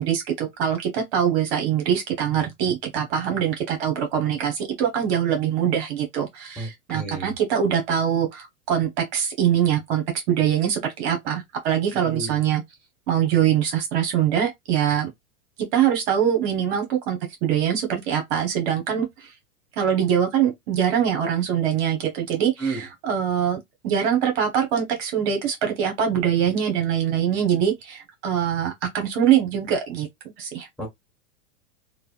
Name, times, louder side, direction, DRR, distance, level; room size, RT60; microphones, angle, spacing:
voice 1, 0.0-12.6 13.1-15.1 15.7-19.3 19.8-30.1 30.4-30.7, right 9 dB, 55° right, 1.4 m, -23 dB
voice 2, 6.6-7.3 11.9-12.4 22.6-22.8 30.8-30.9, right 3 dB, ahead, 1.5 m, -32 dB
3.2 x 2.4 x 2.5 m
hypercardioid pair, 115°, 39 cm